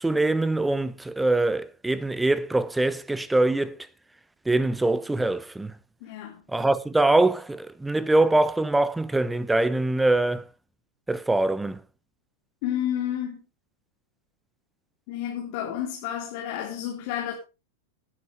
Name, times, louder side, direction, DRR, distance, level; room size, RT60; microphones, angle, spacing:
voice 1, 0.0-3.8 4.5-5.7 6.5-10.4 11.1-11.8, right 2 dB, 5° right, 0.9 m, -23 dB
voice 2, 6.0-6.4 12.6-13.5 15.1-17.3, left 10 dB, 45° left, 3.6 m, -30 dB
18.5 x 9.6 x 3.5 m
figure-of-eight pair, 90°, 0 cm